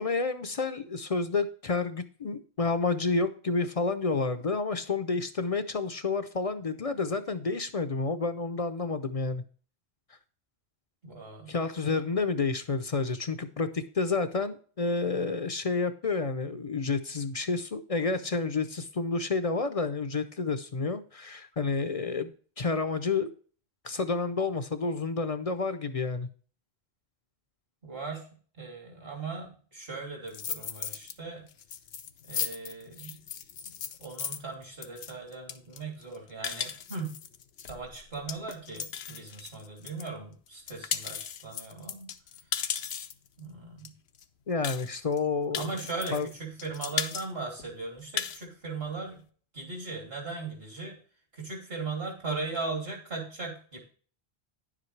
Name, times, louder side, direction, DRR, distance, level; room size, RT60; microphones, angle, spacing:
voice 1, 0.0-9.4 11.5-23.3 23.8-26.3 44.5-45.6 46.1-46.3, left 4 dB, 40° left, 11 dB, 0.6 m, -30 dB
voice 2, 11.0-11.5 27.8-28.3 28.5-31.5 32.3-33.2 34.0-37.2 37.7-42.1 43.4-43.9 45.5-49.2 49.5-51.0 51.3-53.8, right 3 dB, 65° right, 0 dB, 3.2 m, -38 dB
sound 1, 30.3-31.1 31.5-40.1 40.5-43.3 43.9-44.0 44.2-44.3 44.6-45.2 45.5-46.3 46.6-47.3 47.6-47.7 48.0-48.4, left 8 dB, 85° left, 1.0 m, -36 dB
10.0 x 7.5 x 3.2 m, 0.42 s
omnidirectional pair, 1.1 m